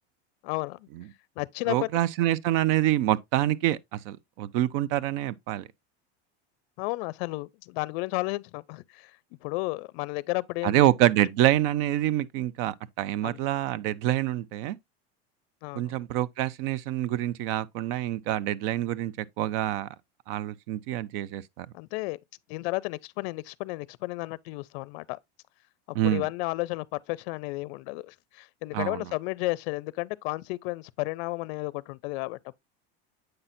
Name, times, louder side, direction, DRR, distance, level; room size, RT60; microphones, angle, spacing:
voice 1, 0.4-0.9 1.4-1.9 6.8-9.1 9.4-10.9 13.2-13.4 15.6-16.0 21.7-22.2 22.5-25.2 25.9-32.6, left 22 dB, 65° left, 0.5 m, -33 dB
voice 2, 1.7-5.7 10.6-14.8 15.7-19.9 20.3-21.7 25.9-26.3 28.7-29.0, right 13 dB, 60° right, 0.5 m, -26 dB
7.9 x 5.6 x 2.6 m
supercardioid pair, 145°, 33 cm